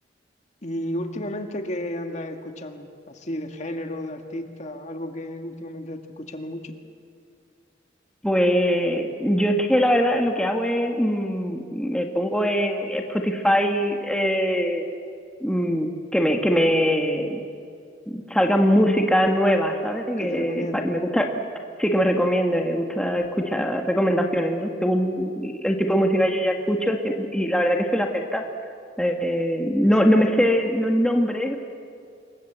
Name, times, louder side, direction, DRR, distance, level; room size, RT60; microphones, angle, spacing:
voice 1, 0.6-6.7 20.2-20.9 30.0-30.4, left 1 dB, 40° left, 5 dB, 2.0 m, -33 dB
voice 2, 8.2-14.9 15.4-17.4 18.1-21.3 21.8-28.4 29.0-31.6, equal, 5° left, 2 dB, 1.5 m, -22 dB
27.5 x 22.0 x 8.1 m, 2.4 s
head